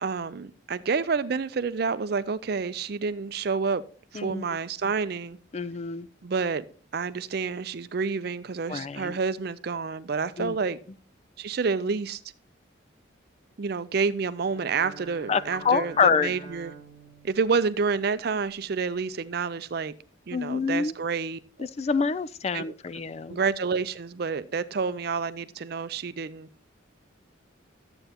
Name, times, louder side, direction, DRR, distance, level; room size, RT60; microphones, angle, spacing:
voice 1, 0.0-3.8 4.1-5.4 6.2-6.6 6.9-10.8 11.4-12.2 13.6-16.7 17.2-19.9 20.3-21.4 22.5-22.7 23.3-26.5, right 5 dB, 55° right, 0.4 m, -29 dB
voice 2, 4.1-4.5 5.5-6.1 8.7-9.2 10.4-10.6 15.3-16.3 20.3-20.9 21.6-23.4, left 5 dB, 35° left, 0.3 m, -26 dB
Bowed string instrument, 14.3-18.5, right 5 dB, 65° left, 4.6 m, -47 dB
12.5 x 7.8 x 2.9 m
head